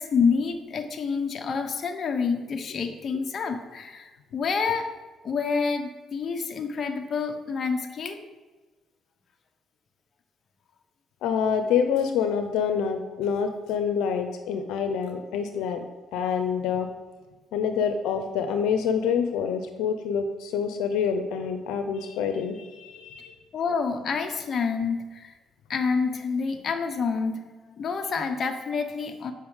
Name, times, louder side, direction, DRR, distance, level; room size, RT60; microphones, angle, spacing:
voice 1, 0.0-5.0 5.2-8.2 23.5-25.3 25.7-27.5 27.8-29.3, left 5 dB, 50° left, 5 dB, 1.2 m, -28 dB
voice 2, 11.2-15.8 16.1-16.9 17.5-23.3, left 7 dB, 90° left, 7 dB, 0.8 m, -27 dB
8.5 x 5.8 x 7.3 m, 1.3 s
cardioid pair, 90°, 0 cm